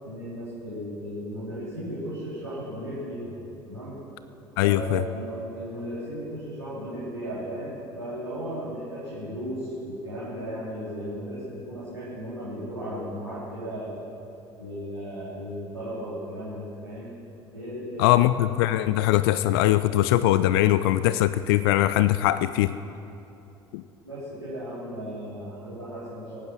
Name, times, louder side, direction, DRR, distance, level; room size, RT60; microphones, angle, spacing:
voice 1, 0.0-3.3 3.6-3.9 4.6-14.0 14.6-17.1 17.5-18.2 24.0-26.4, equal, 90° right, -12 dB, 3.7 m, -35 dB
voice 2, 4.6-5.0 18.0-22.7 23.7-23.8, left 14 dB, 60° left, 14 dB, 0.4 m, -21 dB
23.5 x 9.3 x 6.2 m, 2.8 s
figure-of-eight pair, 60°, 14 cm